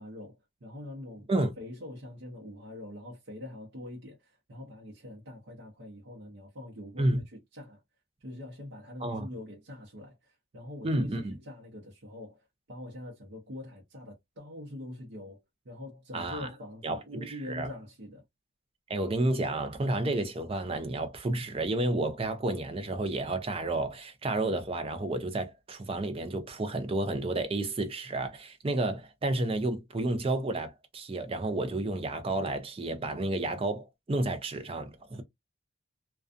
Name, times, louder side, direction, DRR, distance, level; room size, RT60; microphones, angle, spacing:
voice 1, 0.0-7.8 8.2-18.2, left 1 dB, 60° right, 0.7 m, -44 dB
voice 2, 10.8-11.4 16.1-16.5 16.8-17.7 18.9-35.2, right 2 dB, 25° right, 0.4 m, -31 dB
2.4 x 2.3 x 2.4 m
head